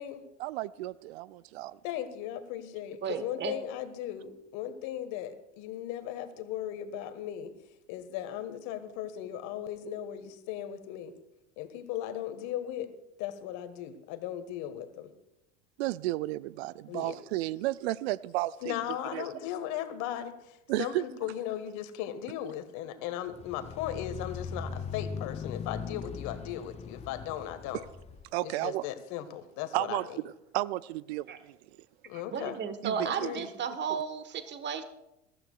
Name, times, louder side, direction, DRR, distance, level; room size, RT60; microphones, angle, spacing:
voice 1, 0.4-1.8 15.8-18.8 19.1-19.3 20.7-21.0 28.3-28.9 29.7-30.1 30.5-31.5 32.8-33.3 33.9-34.0, right 17 dB, 60° right, 0.5 m, -33 dB
voice 2, 1.8-7.5 7.9-11.1 11.6-12.9 13.2-15.1 16.9-17.2 18.6-27.8 28.4-30.2 32.0-32.6 33.0-33.5, left 11 dB, 50° left, 1.6 m, -37 dB
voice 3, 3.0-3.5 31.3-31.4 32.1-34.8, right 7 dB, 30° right, 1.4 m, -34 dB
sound 1, 23.3-28.3, left 6 dB, 20° left, 0.6 m, -40 dB
22.0 x 14.0 x 2.4 m
hypercardioid pair, 80°, 37 cm